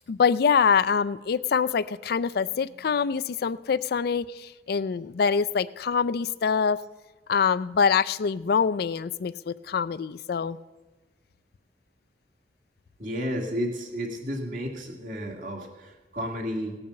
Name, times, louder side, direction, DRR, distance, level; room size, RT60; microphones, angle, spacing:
voice 1, 0.1-6.8 7.3-10.6, left 6 dB, 60° left, 17 dB, 0.4 m, -25 dB
voice 2, 13.0-16.8, equal, 50° right, 0 dB, 2.3 m, -32 dB
18.0 x 6.9 x 6.5 m, 1.2 s
head